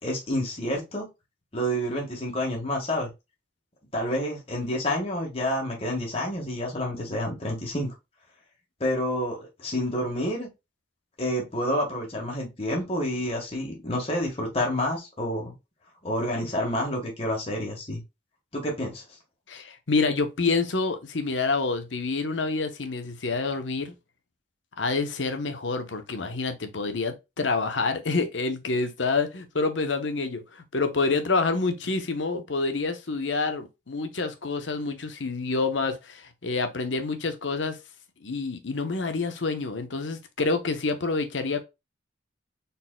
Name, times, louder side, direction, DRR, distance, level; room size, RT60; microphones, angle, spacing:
voice 1, 0.0-1.1 1.5-3.1 3.9-7.9 8.8-10.5 11.2-15.5 16.0-18.0 18.5-19.0, equal, 30° left, 1.6 m, -29 dB
voice 2, 19.5-23.9 24.8-37.8 38.2-41.6, left 3 dB, 85° left, 0.9 m, -27 dB
4.1 x 4.1 x 2.2 m
head